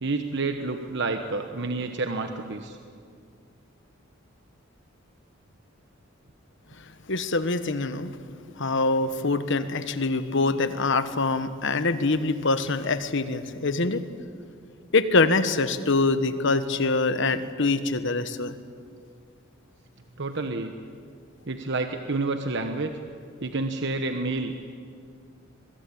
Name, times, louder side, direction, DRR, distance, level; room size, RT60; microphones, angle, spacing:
voice 1, 0.0-2.8 20.2-20.7 21.5-22.9 23.4-24.7, right 3 dB, 60° right, 6 dB, 1.2 m, -29 dB
voice 2, 7.1-8.1 8.6-14.0 14.9-18.6, left 3 dB, 65° left, 11 dB, 1.3 m, -24 dB
23.5 x 21.5 x 8.7 m, 2.2 s
head